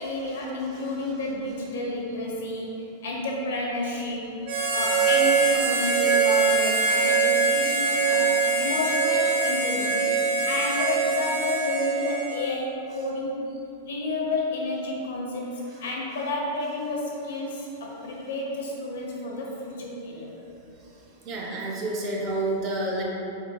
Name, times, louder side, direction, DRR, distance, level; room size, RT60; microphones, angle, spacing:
voice 1, 0.0-4.3 4.7-13.3 13.8-15.5 15.8-20.3, left 2 dB, 90° left, -2 dB, 0.9 m, -30 dB
Harmonica, 4.4-12.5, right 4 dB, 55° right, 1.0 m, -23 dB
voice 2, 21.2-23.0, right 2 dB, 30° right, -2 dB, 0.6 m, -29 dB
4.1 x 3.8 x 2.3 m, 2.8 s
supercardioid pair, 160°, 0 cm